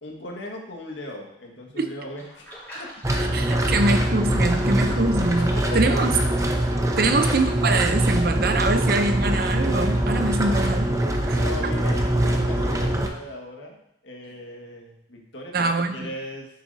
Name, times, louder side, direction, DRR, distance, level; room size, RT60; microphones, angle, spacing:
voice 1, 0.0-2.5 2.8-3.6 4.8-5.1 5.4-6.3 11.3-13.8 14.0-16.5, left 1 dB, 90° left, 0 dB, 1.8 m, -38 dB
sound 1, 2.2-7.4, equal, 10° left, 3.4 m, -42 dB
sound 2, 3.0-13.1, right 1 dB, 15° right, 0.7 m, -23 dB
voice 2, 3.3-6.1 7.0-10.9 11.3-11.4 15.5-16.1, right 2 dB, 55° right, 7 dB, 0.7 m, -24 dB
10.0 x 7.6 x 2.8 m, 0.78 s
head